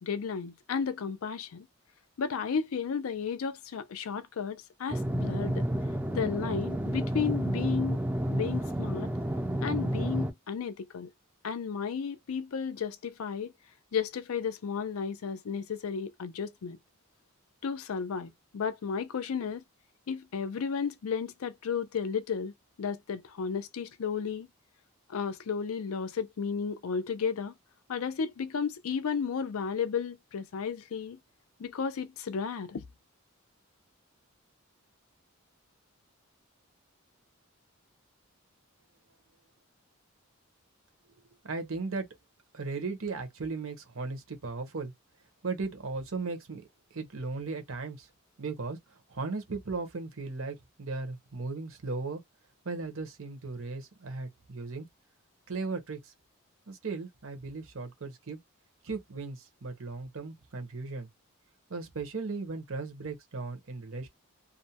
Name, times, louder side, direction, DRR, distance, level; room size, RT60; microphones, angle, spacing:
voice 1, 0.0-1.7 2.2-5.6 6.1-8.0 8.3-9.1 9.6-11.1 11.4-13.5 13.9-16.8 17.6-19.6 20.1-22.5 22.8-24.5 25.1-27.5 27.9-31.2 31.6-32.8, left 6 dB, 80° left, 0.5 m, -33 dB
sound 1, 4.9-10.3, right 1 dB, 5° right, 0.4 m, -30 dB
voice 2, 41.4-42.1 42.5-44.9 45.4-46.6 46.9-48.1 48.4-48.8 49.1-52.2 52.6-54.9 55.5-56.1 56.7-58.4 58.8-61.1 61.7-64.1, right 3 dB, 70° right, 0.8 m, -36 dB
2.5 x 2.1 x 2.8 m
head